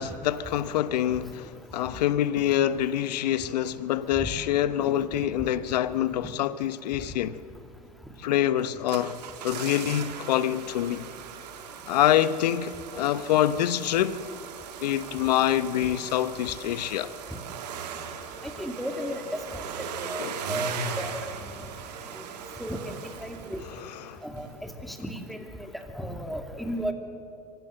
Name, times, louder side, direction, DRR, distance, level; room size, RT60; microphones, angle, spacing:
voice 1, 0.0-7.4 8.2-11.1 11.9-14.2 14.8-17.1 20.2-20.4 23.7-24.2, left 11 dB, 80° left, 0.9 m, -26 dB
sound 1, 8.6-24.1 24.4-24.5, right 6 dB, 80° right, 2.0 m, -39 dB
voice 2, 18.4-19.2 20.0-21.1 22.6-22.9 23.2-23.6 24.2-25.5 26.0-26.9, equal, ahead, 2.5 m, -34 dB
24.0 x 16.5 x 7.6 m
hypercardioid pair, 95°, 21 cm